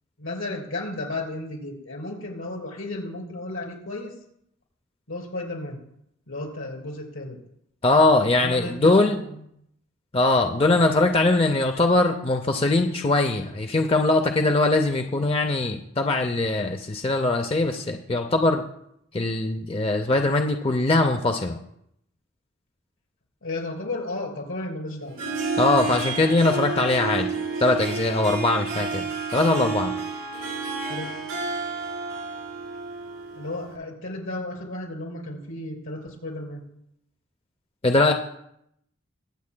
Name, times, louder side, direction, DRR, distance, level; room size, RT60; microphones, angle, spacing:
voice 1, 0.2-4.1 5.1-5.8 6.3-7.4 8.3-9.4 23.4-25.2 30.9-31.1 33.3-36.6, left 2 dB, 85° left, 1 dB, 3.2 m, -33 dB
voice 2, 7.8-9.2 10.1-18.6 19.1-21.6 25.6-27.3 27.6-29.1 29.3-30.0 37.8-38.1, left 2 dB, 30° left, 5 dB, 0.5 m, -21 dB
Harp, 25.0-33.7, right 4 dB, 85° right, 4.1 m, -30 dB
22.5 x 8.4 x 2.2 m, 0.74 s
head